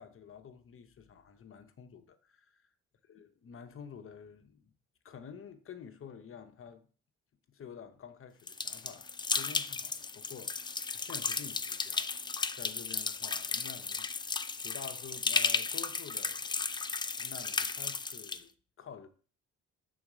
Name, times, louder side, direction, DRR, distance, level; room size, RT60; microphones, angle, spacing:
voice 1, 0.0-2.7 3.1-4.7 5.0-6.9 7.5-14.3 14.6-16.6 17.2-19.1, left 7 dB, 45° left, 0.9 m, -49 dB
sound 1, 8.5-18.4, left 4 dB, 15° left, 0.3 m, -34 dB
6.1 x 3.9 x 4.9 m
cardioid pair, 90°, 30 cm